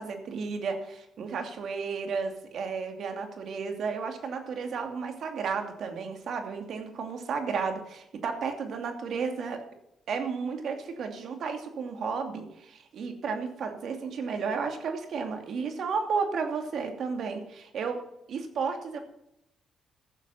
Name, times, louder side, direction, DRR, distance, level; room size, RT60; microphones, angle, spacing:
voice 1, 0.0-9.6 10.1-18.0 18.3-19.0, right 5 dB, 65° right, 5 dB, 2.7 m, -33 dB
14.5 x 7.8 x 5.8 m, 0.80 s
cardioid pair, 90°, 0 cm